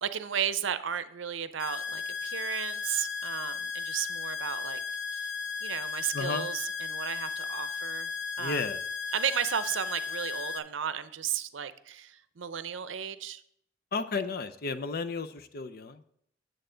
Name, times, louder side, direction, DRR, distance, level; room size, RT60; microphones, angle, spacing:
voice 1, 0.0-4.8 5.1-5.3 5.6-8.1 8.4-8.6 9.1-13.4, right 8 dB, 70° right, 13 dB, 0.6 m, -34 dB
sound 1, 1.6-10.6, left 5 dB, 90° left, 0.8 m, -35 dB
voice 2, 6.1-6.5 8.4-8.8 13.9-16.0, left 4 dB, 55° left, 10 dB, 0.6 m, -33 dB
9.0 x 7.9 x 3.8 m, 0.68 s
head